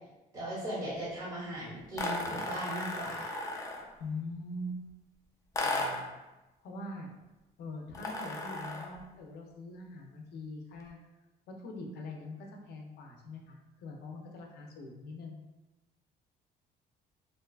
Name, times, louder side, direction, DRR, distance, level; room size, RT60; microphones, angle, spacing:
voice 1, 0.3-3.5, right 1 dB, 25° right, -8 dB, 0.8 m, -38 dB
sound 1, 2.0-3.9 5.5-6.1 7.9-9.0, left 2 dB, 20° left, 0.4 m, -35 dB
voice 2, 4.0-4.8 5.6-6.0 6.6-7.1 7.6-11.0 11.5-15.4, left 2 dB, 75° left, 1 dB, 0.5 m, -43 dB
2.6 x 2.2 x 2.3 m, 1.0 s
cardioid pair, 110°, 17 cm